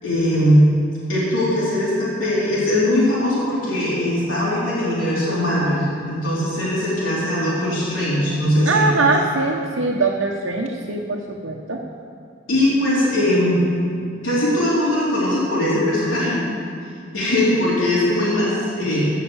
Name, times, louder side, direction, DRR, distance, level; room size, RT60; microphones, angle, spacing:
voice 1, 0.0-0.6 1.1-8.9 12.5-13.6 14.2-16.4 17.1-19.0, left 1 dB, 85° left, -8 dB, 3.8 m, -20 dB
voice 2, 8.6-11.8, right 3 dB, 85° right, -2 dB, 1.0 m, -22 dB
16.0 x 5.9 x 7.1 m, 2.2 s
head